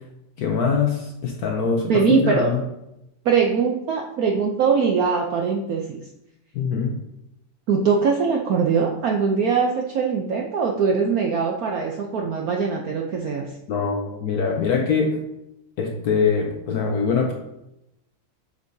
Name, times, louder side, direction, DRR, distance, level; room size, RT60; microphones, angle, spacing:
voice 1, 0.4-2.6 6.5-7.0 13.7-15.2 15.8-17.3, left 5 dB, 65° left, 2 dB, 0.9 m, -23 dB
voice 2, 1.9-2.5 3.2-6.0 7.7-13.5, right 5 dB, 75° right, 1 dB, 0.8 m, -22 dB
8.2 x 5.1 x 2.7 m, 0.89 s
omnidirectional pair, 2.2 m